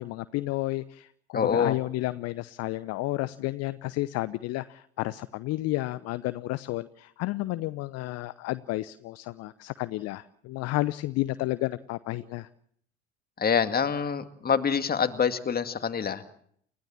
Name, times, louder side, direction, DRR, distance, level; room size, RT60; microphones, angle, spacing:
voice 1, 0.0-12.5, left 18 dB, 45° left, 16 dB, 0.9 m, -31 dB
voice 2, 1.3-1.8 13.4-16.2, left 7 dB, 25° left, 9 dB, 2.2 m, -26 dB
29.5 x 15.5 x 7.2 m, 0.64 s
figure-of-eight pair, 65°, 34 cm